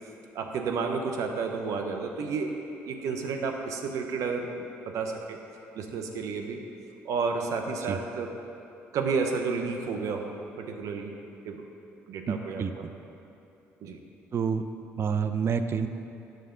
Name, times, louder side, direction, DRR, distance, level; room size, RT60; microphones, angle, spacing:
voice 1, 0.3-2.5 2.9-5.4 5.7-6.6 7.0-8.3 8.9-11.1 11.4-11.6 12.1-12.6 13.8-14.0, right 4 dB, 70° right, 4 dB, 0.8 m, -31 dB
voice 2, 12.3-12.9 14.3-14.6 15.0-15.9, right 6 dB, 45° right, 9 dB, 0.5 m, -28 dB
9.1 x 6.4 x 3.8 m, 2.8 s
supercardioid pair, 70°, 6 cm